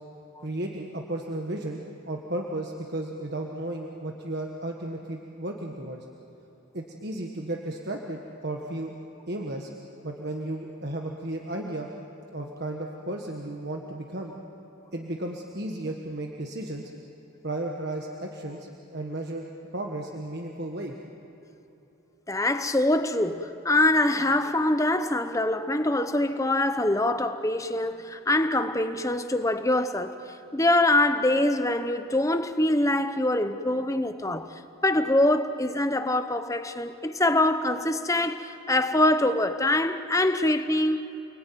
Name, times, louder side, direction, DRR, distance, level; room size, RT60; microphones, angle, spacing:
voice 1, 0.4-1.8 2.1-6.0 6.7-8.9 9.3-9.7 10.0-11.9 12.3-14.3 14.9-16.9 17.4-19.5 19.7-20.9, right 1 dB, 50° right, 1.5 m, -34 dB
voice 2, 22.3-30.2 30.5-34.5 34.8-41.0, left 1 dB, 15° left, 0.9 m, -24 dB
29.5 x 21.5 x 9.4 m
head